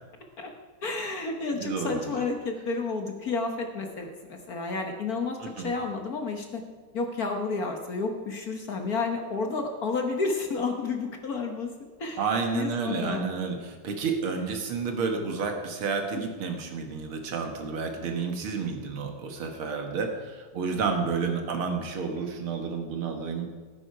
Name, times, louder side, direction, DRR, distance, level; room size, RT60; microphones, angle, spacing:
voice 1, 0.8-6.6 6.9-11.7 12.0-12.2 12.5-13.6 16.1-16.2, left 4 dB, 50° left, 4 dB, 1.4 m, -31 dB
voice 2, 1.5-2.2 5.4-5.7 12.2-23.5, right 5 dB, 70° right, 4 dB, 2.3 m, -30 dB
17.5 x 9.9 x 4.7 m, 1.4 s
omnidirectional pair, 2.4 m